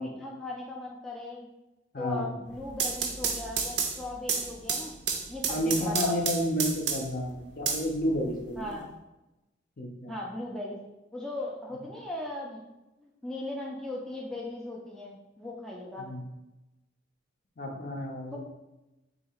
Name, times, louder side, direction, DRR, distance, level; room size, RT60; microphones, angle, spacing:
voice 1, 0.0-1.5 2.0-4.9 5.3-6.2 8.6-8.8 10.1-10.8 11.1-12.6 13.0-16.1 18.3-18.4, left 2 dB, 5° left, -3 dB, 0.4 m, -38 dB
voice 2, 1.9-2.3 5.5-8.8 9.8-10.2 16.0-16.2 17.6-18.4, equal, 50° left, 1 dB, 0.6 m, -31 dB
sound 1, 2.5-7.2 7.7-8.6, right 6 dB, 70° right, 0.5 m, -31 dB
2.8 x 2.8 x 4.2 m, 0.97 s
head